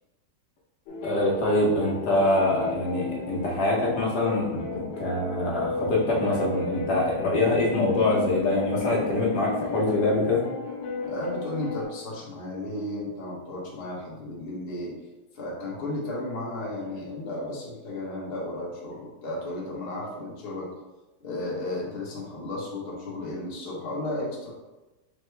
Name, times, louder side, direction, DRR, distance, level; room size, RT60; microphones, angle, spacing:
sound 1, 0.9-11.8, left 3 dB, 90° left, 1.4 m, -34 dB
voice 1, 1.0-10.4, left 2 dB, 65° left, -3 dB, 1.4 m, -24 dB
voice 2, 11.0-15.0 15.3-20.7 21.2-24.5, left 1 dB, 40° left, -4 dB, 1.0 m, -34 dB
4.4 x 2.8 x 3.2 m, 1.1 s
omnidirectional pair, 1.9 m